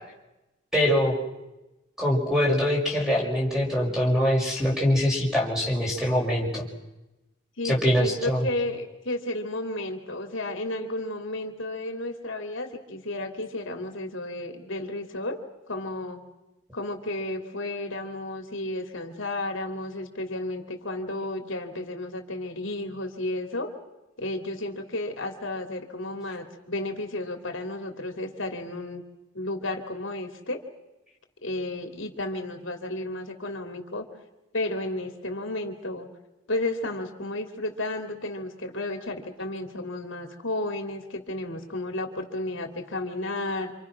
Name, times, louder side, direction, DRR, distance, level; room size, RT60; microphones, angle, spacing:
voice 1, 0.7-1.1 2.0-6.6 7.6-8.4, equal, 5° right, -2 dB, 5.5 m, -23 dB
voice 2, 7.6-15.4 15.7-16.2 16.7-23.7 24.2-29.0 29.3-30.6 31.4-34.0 34.5-36.1 36.5-43.7, left 2 dB, 70° left, 4 dB, 3.0 m, -32 dB
27.5 x 27.0 x 6.1 m, 0.99 s
head